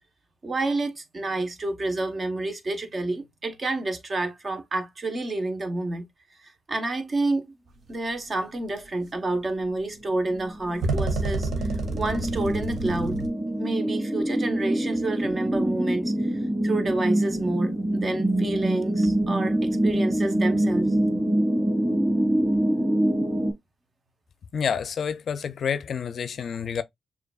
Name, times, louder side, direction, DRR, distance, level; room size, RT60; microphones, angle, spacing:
voice 1, 0.4-6.0 6.4-7.5 7.9-13.2 13.6-20.9, right 2 dB, 40° right, 1.0 m, -29 dB
sound 1, 8.8-8.9 10.8-13.3, right 3 dB, 65° right, 1.0 m, -28 dB
sound 2, 10.0-23.5, right 1 dB, 15° right, 1.8 m, -25 dB
voice 2, 24.5-26.8, left 7 dB, 65° left, 0.4 m, -28 dB
6.6 x 2.5 x 2.3 m
cardioid pair, 80°, 0 cm